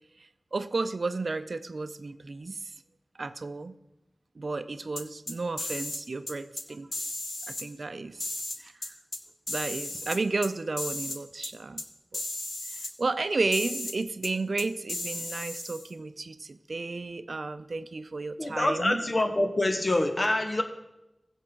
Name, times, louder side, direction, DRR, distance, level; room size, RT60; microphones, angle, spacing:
voice 1, 0.5-2.6 3.2-3.8 4.4-7.1 7.5-8.2 8.6-8.7 9.5-11.8 12.7-19.0, right 3 dB, 70° right, 11 dB, 0.5 m, -32 dB
sound 1, 5.0-6.0 6.3-6.6 6.9-7.6 8.2-9.2 9.5-10.5 10.8-11.2 11.4-11.5 11.8-11.9 12.1-12.9 13.5-13.9 14.2-14.3 14.6-15.9, left 2 dB, 70° left, 1.2 m, -35 dB
voice 2, 18.4-20.6, left 1 dB, 50° left, 6 dB, 1.2 m, -26 dB
16.0 x 7.3 x 3.8 m, 0.93 s
wide cardioid pair, 50°, 0 cm